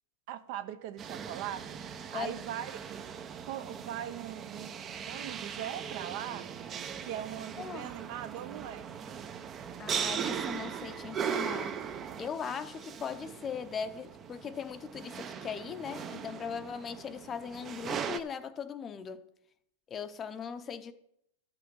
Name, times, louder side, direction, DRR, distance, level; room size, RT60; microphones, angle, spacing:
voice 1, 0.3-3.0 3.5-6.5 7.0-8.9, right 11 dB, 55° right, 0.9 m, -40 dB
sound 1, 1.0-18.2, right 7 dB, 25° right, 0.7 m, -39 dB
voice 2, 9.8-11.8 12.2-19.2 19.9-20.9, left 7 dB, 25° left, 0.8 m, -39 dB
12.5 x 5.8 x 6.2 m
hypercardioid pair, 130°, 0 cm